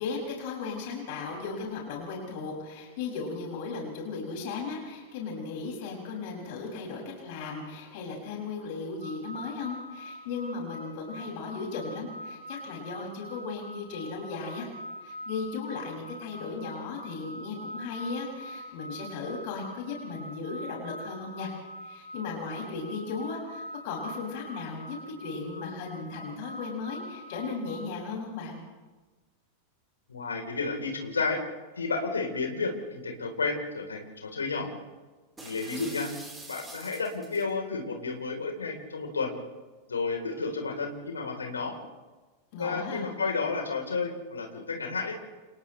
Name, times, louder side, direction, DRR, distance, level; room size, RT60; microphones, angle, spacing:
voice 1, 0.0-14.7 15.0-21.5 21.8-28.6 42.5-43.1, left 4 dB, 50° left, -1 dB, 7.0 m, -36 dB
sound 1, 9.0-27.9, equal, 80° right, 2.2 m, -44 dB
voice 2, 30.1-31.4 31.8-34.7 35.4-36.1 36.5-39.3 39.9-41.8 42.6-45.1, left 4 dB, 75° left, 3 dB, 4.2 m, -31 dB
sound 2, 35.4-37.5, right 2 dB, 10° right, 4.5 m, -45 dB
29.5 x 29.5 x 3.4 m, 1.3 s
figure-of-eight pair, 90°, 0 cm